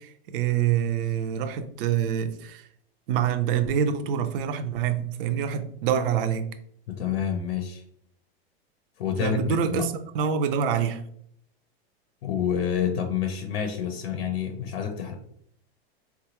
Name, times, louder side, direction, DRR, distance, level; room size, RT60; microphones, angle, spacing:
voice 1, 0.0-2.6 3.1-6.5 9.2-11.0, right 8 dB, 60° right, 0.5 m, -26 dB
voice 2, 6.9-7.8 9.0-9.9 12.2-15.1, left 8 dB, 70° left, 0.6 m, -28 dB
3.9 x 2.3 x 2.9 m
supercardioid pair, 145°, 31 cm